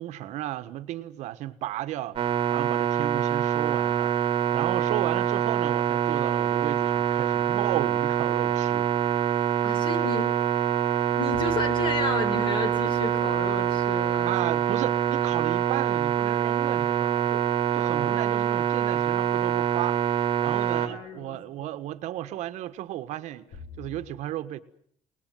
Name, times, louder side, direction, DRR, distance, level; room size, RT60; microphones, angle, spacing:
voice 1, 0.0-8.9 14.3-20.0 20.4-24.6, right 14 dB, 75° right, 1.5 m, -34 dB
sound 1, 2.2-20.9, right 10 dB, 45° right, 2.2 m, -25 dB
voice 2, 9.6-10.7 11.1-14.4 17.8-18.3 20.7-21.7, left 3 dB, 45° left, 4.5 m, -33 dB
sound 2, 20.9-21.1 23.5-24.1, left 7 dB, 75° left, 4.1 m, -48 dB
29.0 x 20.0 x 9.4 m
cardioid pair, 175°, 12 cm